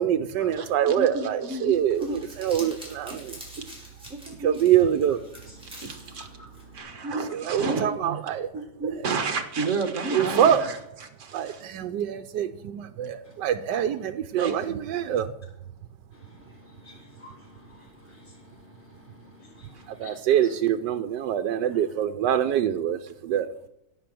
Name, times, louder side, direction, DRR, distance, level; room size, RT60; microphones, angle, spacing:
voice 1, 0.0-3.4 4.4-5.2 7.3-8.5 10.2-10.6 11.3-15.3 20.0-23.5, right 10 dB, 85° right, 10 dB, 1.3 m, -25 dB
voice 2, 0.6-2.3 3.1-3.2 3.6-3.7 4.1-4.6 5.8-6.5 6.7-11.6 13.7-13.8 14.4-14.8 19.7-19.8, right 3 dB, 50° right, 6 dB, 1.7 m, -32 dB
Crumpling crinkling, 1.7-6.8, right 1 dB, 5° right, 4.4 m, -45 dB
voice 3, 5.5-5.9 6.8-7.0 16.6-18.3 19.4-20.5, left 2 dB, 30° left, -5 dB, 5.1 m, -50 dB
17.0 x 6.0 x 7.7 m, 0.80 s
omnidirectional pair, 1.8 m